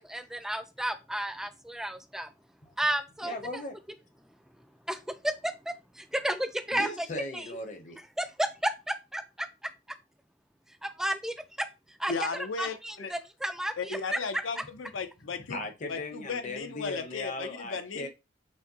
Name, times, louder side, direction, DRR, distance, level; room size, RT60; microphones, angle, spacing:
voice 1, 0.0-2.3 2.8-3.6 4.9-6.9 7.3-7.5 8.2-9.5 10.8-11.7 12.0-12.1 12.6-14.2, right 1 dB, 5° right, 0.3 m, -32 dB
voice 2, 3.2-3.8 6.7-8.0 15.5-18.1, left 2 dB, 40° left, 0.7 m, -37 dB
voice 3, 12.1-13.1 13.8-15.6 15.9-18.1, left 4 dB, 85° left, 0.6 m, -35 dB
6.1 x 2.2 x 2.7 m
head